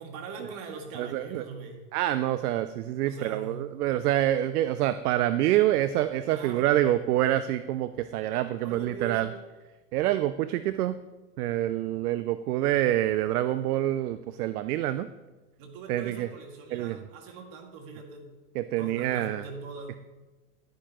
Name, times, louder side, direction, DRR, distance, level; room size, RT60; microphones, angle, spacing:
voice 1, 0.0-1.8 3.0-3.7 6.3-6.9 8.3-9.3 15.6-18.3 18.8-20.0, right 4 dB, 45° right, 2 dB, 2.2 m, -41 dB
voice 2, 1.0-1.4 1.9-9.3 9.9-11.0 11.4-15.1 15.9-16.3 16.7-17.0 18.6-19.4, right 13 dB, 70° right, 13 dB, 0.6 m, -26 dB
11.5 x 10.0 x 3.0 m, 1.2 s
hypercardioid pair, 100°, 47 cm